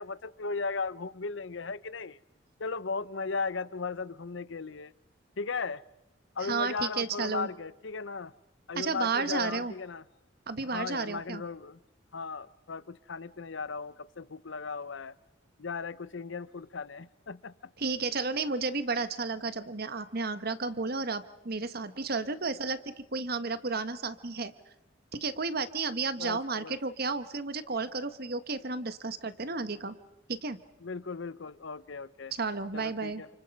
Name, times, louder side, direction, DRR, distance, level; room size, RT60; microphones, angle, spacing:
voice 1, 0.0-2.2 2.6-4.9 5.4-5.8 6.4-8.3 8.7-10.0 10.6-11.8 12.1-15.1 15.6-17.5 26.2-26.8 30.8-32.3 32.7-33.4, left 4 dB, 70° left, 0.8 m, -36 dB
voice 2, 6.4-7.5 8.7-9.7 10.5-11.4 17.8-24.5 25.2-29.9 30.3-30.6 32.3-33.2, right 4 dB, 55° right, 1.4 m, -32 dB
29.5 x 27.5 x 5.4 m
head